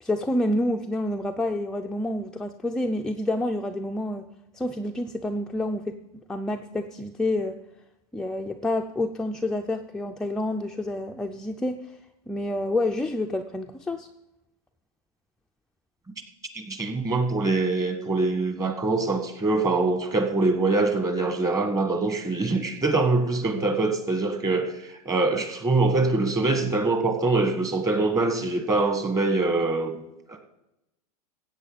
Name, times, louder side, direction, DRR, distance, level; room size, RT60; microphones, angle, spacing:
voice 1, 0.0-4.3 4.5-6.0 6.3-7.6 8.1-11.9 12.3-14.1, left 1 dB, 5° left, 3 dB, 0.4 m, -28 dB
voice 2, 16.5-30.0, right 3 dB, 20° right, 6 dB, 1.4 m, -24 dB
16.0 x 8.2 x 4.0 m, 0.91 s
hypercardioid pair, 125°, 20 cm